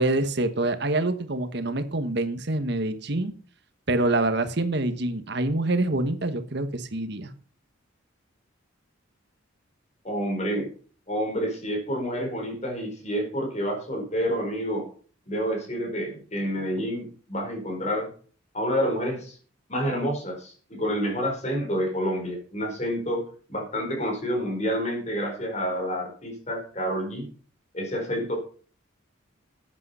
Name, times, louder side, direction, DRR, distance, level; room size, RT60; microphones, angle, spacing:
voice 1, 0.0-3.3 3.9-7.3, right 2 dB, 55° right, 9 dB, 1.2 m, -26 dB
voice 2, 10.0-10.7 11.1-14.9 15.3-18.1 18.5-19.4 19.7-27.3 27.7-28.4, equal, 35° left, 2 dB, 4.5 m, -28 dB
13.5 x 8.6 x 5.6 m, 0.43 s
head